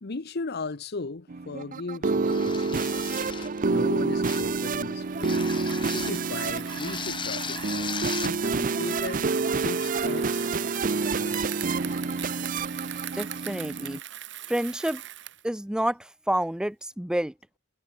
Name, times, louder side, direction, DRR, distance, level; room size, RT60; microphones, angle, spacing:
voice 1, 0.0-3.2 3.6-5.5 5.9-9.3 9.6-10.4 11.2-11.5, left 3 dB, 55° left, 0.9 m, -37 dB
sound 1, 1.3-14.0, right 4 dB, 40° right, 0.6 m, -28 dB
sound 2, 2.3-3.6 4.2-4.6 5.2-6.2 6.7-8.4, left 6 dB, 25° left, 1.6 m, -36 dB
Bicycle, 5.0-15.5, right 12 dB, 60° right, 4.6 m, -41 dB
voice 2, 13.1-14.0 14.5-15.0 15.4-17.3, right 1 dB, 5° right, 0.4 m, -29 dB
head